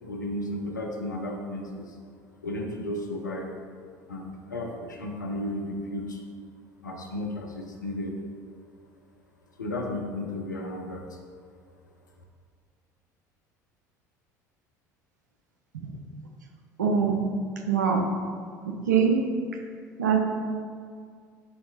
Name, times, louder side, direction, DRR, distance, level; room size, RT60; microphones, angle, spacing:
voice 1, 0.0-2.0 2.4-3.5 4.1-6.2 6.8-8.2 9.6-11.2, left 1 dB, 85° left, 1 dB, 0.5 m, -33 dB
voice 2, 16.8-17.2 17.7-18.1 18.7-19.2 20.0-20.2, right 6 dB, 75° right, 3 dB, 0.4 m, -23 dB
5.6 x 2.6 x 2.6 m, 2.1 s
figure-of-eight pair, 65°, 10 cm